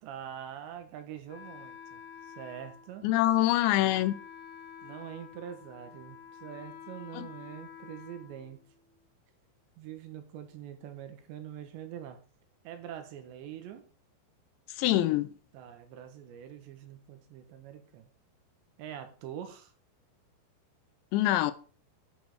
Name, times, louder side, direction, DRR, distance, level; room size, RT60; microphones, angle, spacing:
voice 1, 0.0-3.0 4.8-8.6 9.8-12.2 12.7-13.8 15.5-18.1 18.8-19.7, right 10 dB, 75° right, 3.4 m, -44 dB
Wind instrument woodwind instrument, 1.3-9.0, left 8 dB, 65° left, 3.1 m, -49 dB
voice 2, 3.0-4.1 7.1-7.3 14.8-15.3 21.1-21.5, left 15 dB, 85° left, 2.9 m, -25 dB
10.5 x 6.7 x 4.8 m
omnidirectional pair, 5.3 m